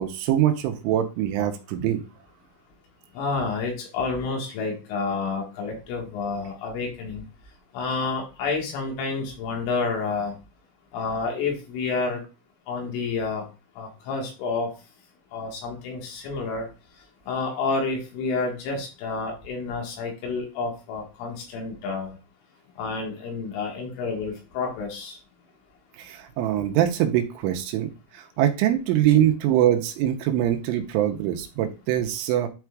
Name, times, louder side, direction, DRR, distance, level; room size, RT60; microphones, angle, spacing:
voice 1, 0.0-2.0 26.0-27.9 28.4-32.5, right 11 dB, 85° right, 5 dB, 3.1 m, -23 dB
voice 2, 3.1-7.2 7.7-10.3 10.9-12.2 12.7-13.5 13.8-14.7 15.3-16.7 17.3-22.2 22.8-25.2, left 4 dB, 75° left, 0 dB, 4.1 m, -29 dB
11.5 x 4.5 x 2.4 m, 0.31 s
omnidirectional pair, 5.7 m